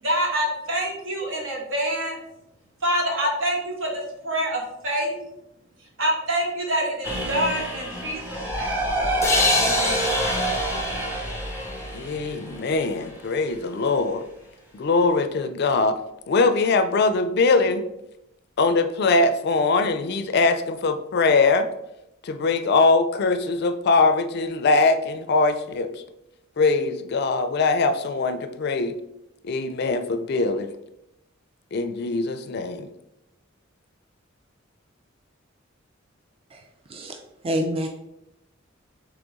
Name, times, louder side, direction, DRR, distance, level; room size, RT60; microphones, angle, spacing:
voice 1, 0.0-2.2 2.8-5.2 6.0-8.8 9.5-10.1, right 1 dB, 75° right, -1 dB, 1.2 m, -26 dB
sound 1, 7.0-13.0, right 1 dB, 10° right, 1.1 m, -27 dB
sound 2, 9.2-12.7, left 3 dB, 15° left, 0.6 m, -27 dB
voice 2, 11.9-14.2 14.7-16.0 16.3-17.8 18.6-21.7 22.2-25.9 26.6-28.9 29.4-30.7 31.7-32.9, left 3 dB, 55° left, 10 dB, 0.4 m, -22 dB
voice 3, 37.4-37.9, equal, 30° right, 3 dB, 0.4 m, -26 dB
3.9 x 3.4 x 3.6 m, 0.83 s
head